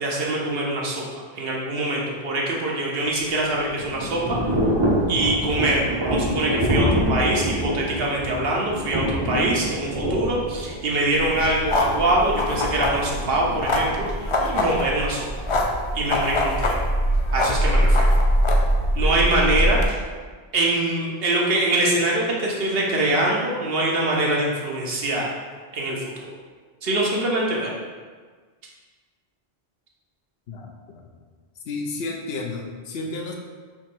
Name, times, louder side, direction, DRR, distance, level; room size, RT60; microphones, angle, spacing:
voice 1, 0.0-4.4 5.1-15.3 15.9-16.8 17.3-18.1 19.0-20.0 20.5-25.3 25.7-26.3 26.8-27.7, right 2 dB, 70° right, -3 dB, 1.0 m, -24 dB
Thunder / Rain, 3.1-15.0, equal, 30° right, 0.6 m, -27 dB
sound 1, 11.1-19.9, equal, 50° left, 0.3 m, -22 dB
voice 2, 30.5-31.0 31.7-33.3, left 3 dB, 75° left, 1 dB, 0.9 m, -32 dB
3.6 x 3.0 x 4.4 m, 1.5 s
omnidirectional pair, 1.0 m